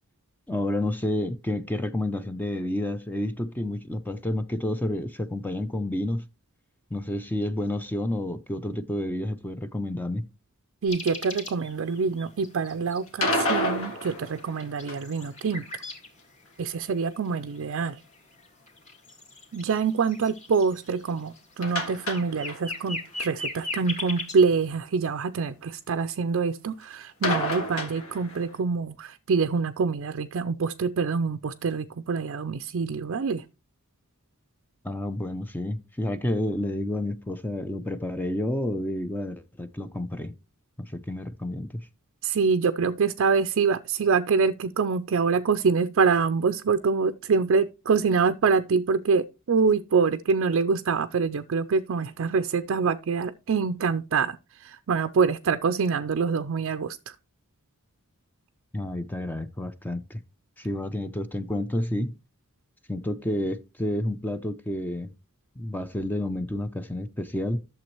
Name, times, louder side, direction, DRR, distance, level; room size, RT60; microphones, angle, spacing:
voice 1, 0.5-6.3 6.9-10.3 34.8-40.4 40.8-41.9 58.7-60.2 60.6-62.1 62.9-65.1 65.6-67.6, left 1 dB, 10° left, 0.4 m, -30 dB
voice 2, 10.8-15.8 16.6-18.0 19.5-33.4 42.2-57.1, right 5 dB, 60° right, 0.4 m, -25 dB
sound 1, 10.9-13.1 13.7-13.8 14.2-16.1 16.4-24.4, left 2 dB, 35° left, 2.1 m, -38 dB
sound 2, 13.1-15.2 21.6-22.9 23.2-23.3 23.6-23.7 27.2-28.6, left 1 dB, 65° left, 1.8 m, -29 dB
11.5 x 7.0 x 3.0 m
head